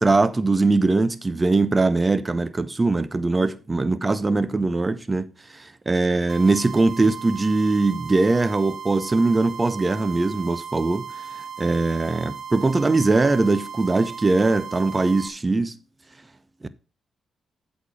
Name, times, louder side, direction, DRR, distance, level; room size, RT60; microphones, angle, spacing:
voice 1, 0.0-11.1 11.6-15.8 16.6-16.7, right 3 dB, 30° right, 0.9 m, -21 dB
sound 1, 6.3-15.3, right 7 dB, 55° right, 0.9 m, -37 dB
8.1 x 4.4 x 7.1 m
hypercardioid pair, 50°, 0 cm